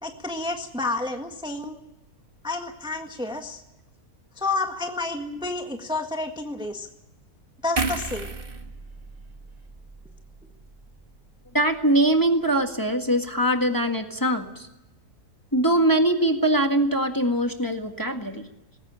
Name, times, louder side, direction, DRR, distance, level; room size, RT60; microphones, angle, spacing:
voice 1, 0.0-1.8 2.4-3.6 4.4-6.9 7.6-8.3, left 2 dB, 5° right, 4 dB, 1.6 m, -30 dB
sound 1, 7.8-11.1 11.5-11.7, right 3 dB, 35° right, 1.9 m, -34 dB
voice 2, 11.5-14.7 15.5-18.4, right 1 dB, 15° left, 4 dB, 1.7 m, -22 dB
20.0 x 17.0 x 8.9 m, 0.93 s
omnidirectional pair, 1.6 m